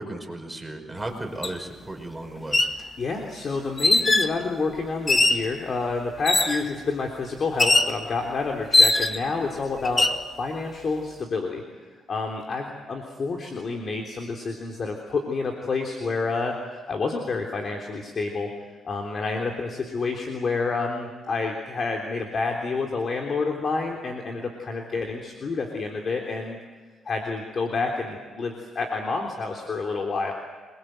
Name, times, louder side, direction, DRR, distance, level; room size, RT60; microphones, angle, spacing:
voice 1, 0.0-2.6, right 1 dB, 10° right, 4 dB, 5.3 m, -35 dB
sound 1, 1.4-1.5 2.4-2.8 3.8-4.3 5.1-5.5 6.2-6.7 7.6-8.0 8.7-9.3 9.8-10.2, left 2 dB, 25° left, 1.8 m, -20 dB
voice 2, 2.8-10.1 10.4-11.6 12.1-18.5 18.8-26.6 27.1-30.3, left 4 dB, 45° left, 2 dB, 3.6 m, -29 dB
26.5 x 22.5 x 8.0 m, 1.4 s
cardioid pair, 90°, 0 cm